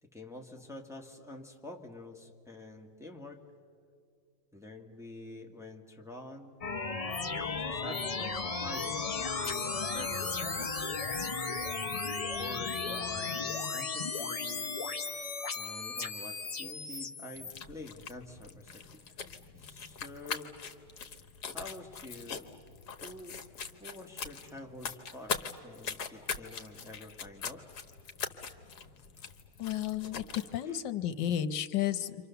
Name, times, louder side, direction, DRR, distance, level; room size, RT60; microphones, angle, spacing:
voice 1, 0.0-3.4 4.5-6.6 7.3-10.8 12.4-14.8 15.5-19.2 19.6-20.6 21.5-22.5 23.0-23.4 23.8-27.6 29.2-29.3 30.6-30.8, left 2 dB, ahead, 1 dB, 1.5 m, -47 dB
sound 1, 6.6-17.5, left 4 dB, 35° left, 0.6 m, -35 dB
sound 2, 17.3-30.5, left 6 dB, 65° left, 1.7 m, -42 dB
voice 2, 29.6-32.2, left 10 dB, 85° left, 12 dB, 1.5 m, -32 dB
29.5 x 26.0 x 6.9 m, 2.3 s
omnidirectional pair, 1.9 m